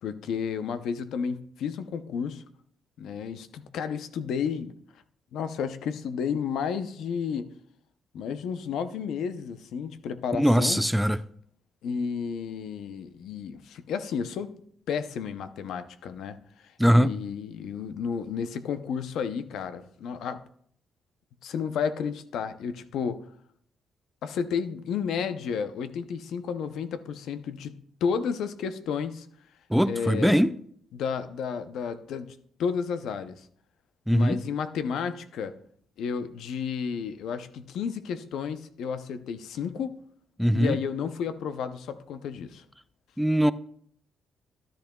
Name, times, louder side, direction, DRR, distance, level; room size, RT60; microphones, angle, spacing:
voice 1, 0.0-2.4 3.0-4.7 5.3-7.5 8.1-10.8 11.8-14.5 14.9-20.4 21.4-23.2 24.2-29.3 29.8-30.4 30.9-33.5 34.1-35.5 36.0-40.0 40.5-42.7, left 6 dB, 75° left, 0.6 m, -32 dB
voice 2, 10.3-11.2 16.8-17.1 29.7-30.5 34.1-34.4 40.4-40.8 43.2-43.5, equal, ahead, 0.3 m, -21 dB
13.5 x 10.5 x 2.3 m
cardioid pair, 90°, 0 cm